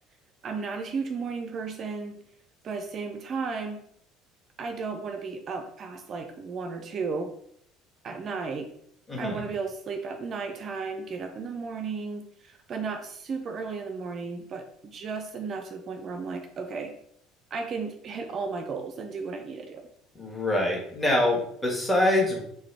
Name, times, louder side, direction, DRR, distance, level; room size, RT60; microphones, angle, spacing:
voice 1, 0.4-2.2 2.6-3.8 4.6-7.3 8.0-8.7 9.2-16.9 17.5-19.8, right 4 dB, 45° right, 5 dB, 0.4 m, -34 dB
voice 2, 9.1-9.4 20.1-22.4, left 1 dB, 15° left, -2 dB, 1.5 m, -25 dB
3.8 x 2.5 x 3.3 m, 0.70 s
hypercardioid pair, 60°, 0 cm